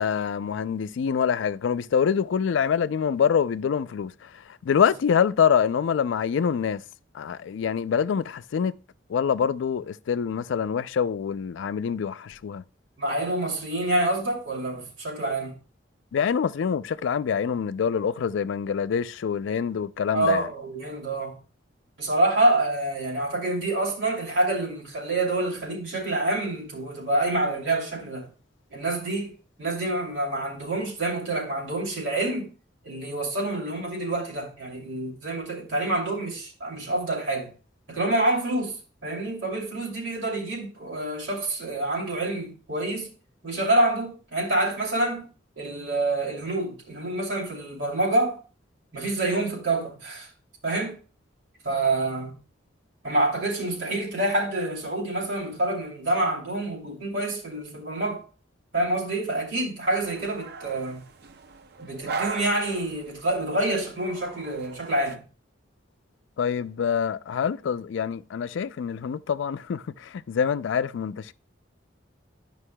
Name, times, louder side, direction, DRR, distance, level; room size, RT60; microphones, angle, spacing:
voice 1, 0.0-6.8 7.1-8.7 9.1-12.6 16.1-20.4 66.4-71.3, left 7 dB, 80° left, 0.3 m, -25 dB
voice 2, 13.0-15.6 20.1-21.4 22.0-28.3 28.7-32.5 32.8-37.5 37.9-43.1 43.4-45.3 45.6-48.4 48.9-50.3 50.6-51.0 51.6-52.3 53.0-58.2 58.7-61.0 61.8-65.2, right 2 dB, 85° right, 2.6 m, -27 dB
sound 1, 59.9-65.2, right 4 dB, 55° right, 0.6 m, -38 dB
11.5 x 5.3 x 2.2 m
head